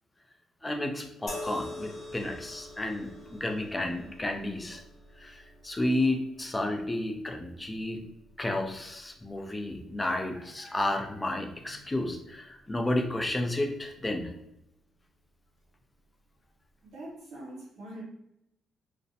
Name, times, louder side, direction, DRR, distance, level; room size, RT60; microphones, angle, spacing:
voice 1, 0.6-4.8 5.2-8.0 8.4-14.3, left 1 dB, 15° left, 4 dB, 0.4 m, -32 dB
sound 1, 1.3-14.6 15.5-15.7, left 2 dB, 45° left, 0.8 m, -48 dB
voice 2, 16.8-18.0, right 1 dB, 70° right, -4 dB, 0.7 m, -43 dB
2.4 x 2.1 x 2.6 m, 0.84 s
cardioid pair, 90°, 0 cm